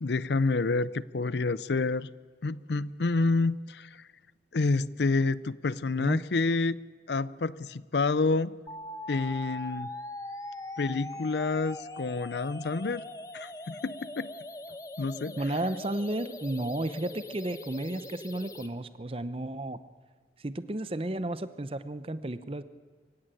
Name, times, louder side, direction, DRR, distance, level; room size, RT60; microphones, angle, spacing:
voice 1, 0.0-2.1 2.4-3.9 4.5-6.8 7.1-8.5 9.1-9.9 10.8-13.0 13.3-14.3 15.0-15.4, left 3 dB, 75° left, 19 dB, 0.6 m, -28 dB
sound 1, 8.7-18.7, left 1 dB, 20° left, 1.0 m, -41 dB
voice 2, 15.4-19.8 20.4-22.6, right 1 dB, 30° right, 14 dB, 0.8 m, -33 dB
24.5 x 15.5 x 9.1 m, 1.6 s
head